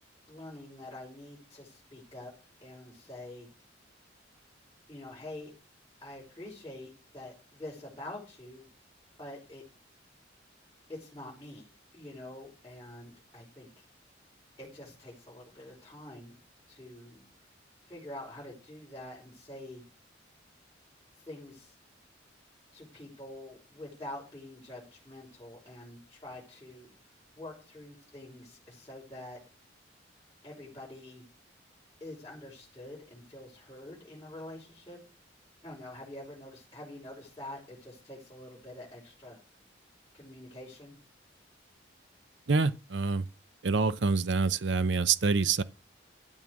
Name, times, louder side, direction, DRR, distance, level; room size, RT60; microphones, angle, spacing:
voice 1, 0.3-2.3 2.6-3.5 4.9-5.5 6.0-8.7 9.2-9.6 10.9-11.7 11.9-13.8 14.6-16.4 16.7-17.3 17.9-19.8 21.3-21.7 22.7-26.9 27.3-29.4 30.4-31.2 32.0-35.0 35.6-39.4 40.1-40.9, left 1 dB, 15° left, 5.0 m, -46 dB
voice 2, 42.5-43.2 43.6-45.6, right 4 dB, 70° right, 0.7 m, -26 dB
13.0 x 7.4 x 6.4 m
head